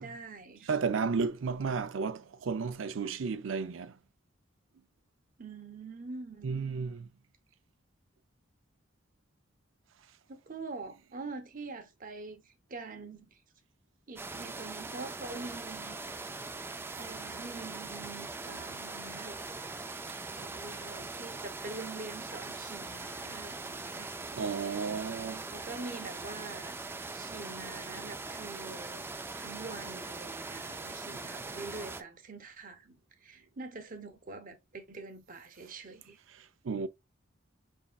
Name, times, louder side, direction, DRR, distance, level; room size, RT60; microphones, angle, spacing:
voice 1, 0.0-0.7 5.4-6.5 10.3-13.4 14.1-16.0 17.0-19.5 20.3-24.1 25.5-26.7 27.1-33.0 33.2-36.2, right 3 dB, 45° right, 0.9 m, -45 dB
voice 2, 0.7-3.9 6.4-7.1 24.3-25.4 36.6-36.9, right 5 dB, 85° right, 0.5 m, -33 dB
sound 1, 14.2-32.0, right 3 dB, 10° right, 0.4 m, -41 dB
5.3 x 3.5 x 2.3 m
head